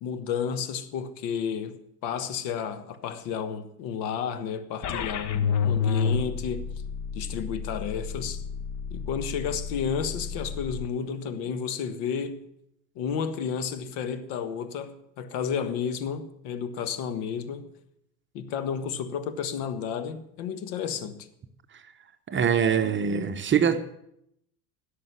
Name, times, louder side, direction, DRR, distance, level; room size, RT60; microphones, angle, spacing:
voice 1, 0.0-6.7 7.1-8.4 8.9-12.4 12.9-17.7 18.3-21.3 22.4-22.5, left 7 dB, 50° left, 1.5 m, -32 dB
sound 1, 4.8-10.9, left 6 dB, 35° left, 1.2 m, -30 dB
voice 2, 22.3-24.0, right 7 dB, 25° right, 1.0 m, -24 dB
16.5 x 6.8 x 9.5 m
figure-of-eight pair, 80°, 50 cm